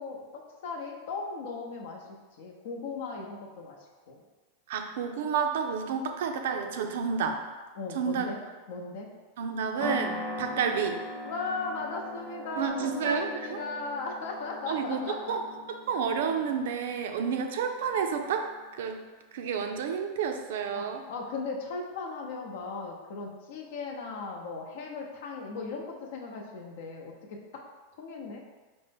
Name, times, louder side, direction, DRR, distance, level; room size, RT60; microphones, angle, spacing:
voice 1, 0.0-3.8 4.1-4.2 7.8-8.4 8.7-9.1 10.3-10.5 11.2-15.3 20.7-27.6 28.0-28.4, left 4 dB, 65° left, 1 dB, 0.6 m, -37 dB
voice 2, 4.7-7.4 7.9-8.3 9.4-10.9 12.6-13.6 14.7-15.4 15.7-19.0 19.3-21.0, right 6 dB, 75° right, 5 dB, 0.4 m, -30 dB
sound 1, 9.8-18.3, left 1 dB, 10° left, 0.5 m, -41 dB
4.3 x 2.1 x 3.4 m, 1.3 s
supercardioid pair, 145°, 0 cm